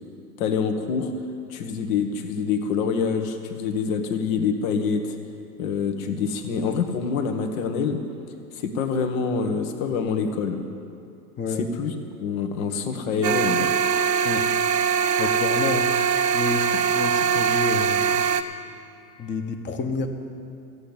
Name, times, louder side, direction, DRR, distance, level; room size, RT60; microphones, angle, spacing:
voice 1, 0.4-1.1 1.5-5.2 5.6-8.0 8.5-10.6 11.6-11.9 12.2-13.7, left 5 dB, 55° left, 6 dB, 1.7 m, -26 dB
sound 1, 13.2-18.4, right 7 dB, 85° right, 0.9 m, -22 dB
voice 2, 15.2-15.9 16.3-18.2 19.2-20.1, left 4 dB, 20° left, 6 dB, 1.3 m, -29 dB
14.5 x 8.3 x 8.9 m, 2.6 s
hypercardioid pair, 105°, 49 cm